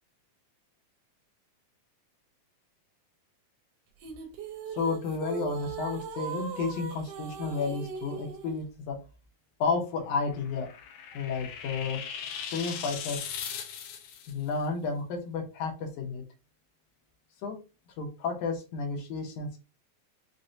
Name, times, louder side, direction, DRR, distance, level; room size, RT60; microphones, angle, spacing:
sound 1, 4.0-8.5, right 6 dB, 70° right, 1.6 m, -39 dB
voice 1, 4.8-9.0 9.6-10.7 11.1-12.0 12.5-13.2 14.3-16.2 17.4-17.6 17.9-19.6, left 4 dB, 90° left, 2 dB, 2.3 m, -32 dB
sound 2, 10.2-14.3, left 7 dB, 75° left, 1.7 m, -39 dB
6.0 x 2.1 x 2.7 m, 0.31 s
omnidirectional pair, 3.4 m